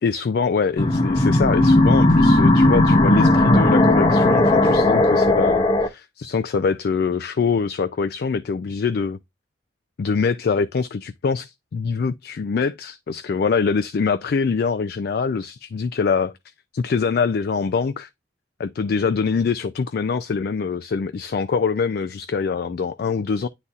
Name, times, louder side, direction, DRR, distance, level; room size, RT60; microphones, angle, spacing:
voice 1, 0.0-9.2 10.0-16.3 16.7-18.1 18.6-23.5, left 5 dB, 60° left, 0.4 m, -24 dB
sound 1, 0.8-5.9, left 1 dB, 30° left, 0.7 m, -16 dB
9.8 x 4.0 x 2.4 m
head